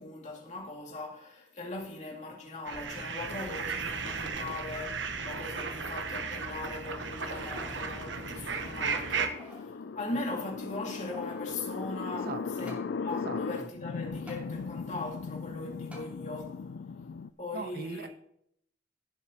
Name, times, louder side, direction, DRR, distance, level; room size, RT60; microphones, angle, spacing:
voice 1, 0.0-16.6 17.4-18.1, left 2 dB, 40° left, 2.4 m, -40 dB
sound 1, 2.6-9.3, right 5 dB, 85° right, 1.1 m, -35 dB
sound 2, 4.9-17.3, left 5 dB, 70° left, 0.4 m, -39 dB
sound 3, 7.4-7.8 8.3-8.4 9.1-9.7 10.7-11.5 12.7-12.9 14.3-14.4 15.9-16.1 16.7-16.8, right 1 dB, 10° right, 2.5 m, -51 dB
voice 2, 12.1-12.8 13.1-13.7 17.5-18.1, right 3 dB, 55° right, 0.8 m, -40 dB
16.5 x 7.7 x 3.0 m
head